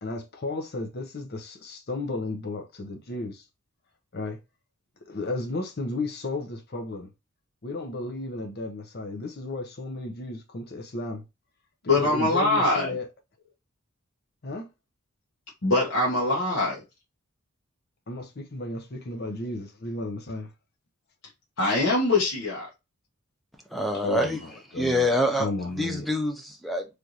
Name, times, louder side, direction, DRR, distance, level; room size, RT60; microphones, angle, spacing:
voice 1, 0.0-3.4 4.1-4.4 5.1-7.1 7.6-11.2 12.0-13.1 14.4-14.7 18.1-20.5 24.0-25.1 25.3-26.1, left 2 dB, 45° left, 0.7 m, -33 dB
voice 2, 11.9-12.9 15.6-16.8 21.6-22.7, left 2 dB, 65° left, 1.1 m, -23 dB
voice 3, 23.7-24.4 24.7-26.9, left 1 dB, ahead, 0.4 m, -26 dB
3.4 x 2.5 x 2.8 m
head